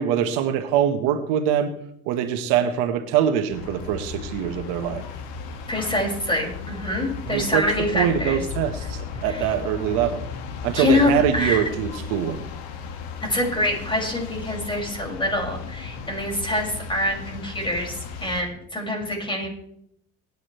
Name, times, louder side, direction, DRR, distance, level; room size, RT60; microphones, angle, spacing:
voice 1, 0.0-1.7 2.0-5.0 7.3-7.7 7.9-10.3 10.6-12.4, right 9 dB, 85° right, 7 dB, 1.7 m, -23 dB
sound 1, 3.5-18.4, left 6 dB, 90° left, 2.2 m, -35 dB
voice 2, 5.7-8.4 9.3-9.5 10.7-11.6 13.2-17.9 18.2-19.5, left 1 dB, 15° left, -1 dB, 6.6 m, -25 dB
25.0 x 10.0 x 3.4 m, 0.70 s
supercardioid pair, 85°, 32 cm